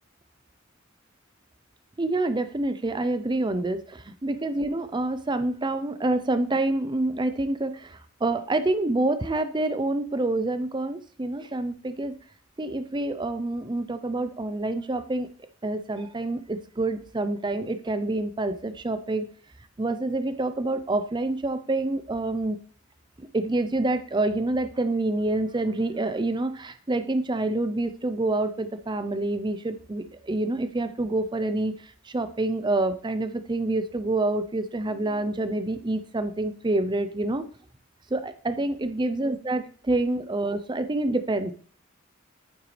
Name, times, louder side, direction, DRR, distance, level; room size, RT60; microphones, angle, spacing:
voice 1, 2.0-12.1 12.6-15.3 15.6-19.3 19.8-22.6 23.2-31.7 32.1-37.5 38.1-41.5, right 2 dB, 20° right, 11 dB, 0.6 m, -27 dB
8.9 x 7.9 x 3.3 m, 0.43 s
head